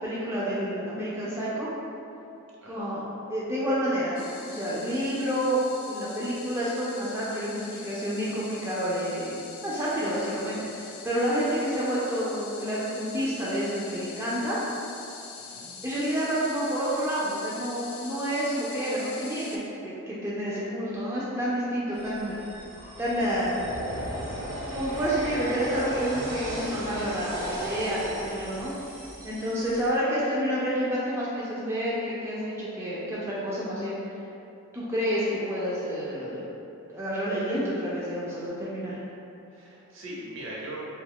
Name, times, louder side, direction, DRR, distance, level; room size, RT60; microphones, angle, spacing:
voice 1, 0.0-1.7 2.7-3.0 3.3-5.6 5.9-9.4 9.6-14.6 15.8-22.4 23.0-24.1 24.7-28.7 29.2-34.0 34.7-36.4 36.9-39.0, equal, 15° right, -8 dB, 0.3 m, -29 dB
voice 2, 2.6-2.9 15.4-15.7 39.5-40.9, right 1 dB, 60° right, -5 dB, 0.6 m, -40 dB
sound 1, 4.2-19.6, left 5 dB, 75° left, 0.4 m, -44 dB
sound 2, 21.9-29.9, equal, 80° right, 1.0 m, -36 dB
2.7 x 2.3 x 3.4 m, 2.8 s
head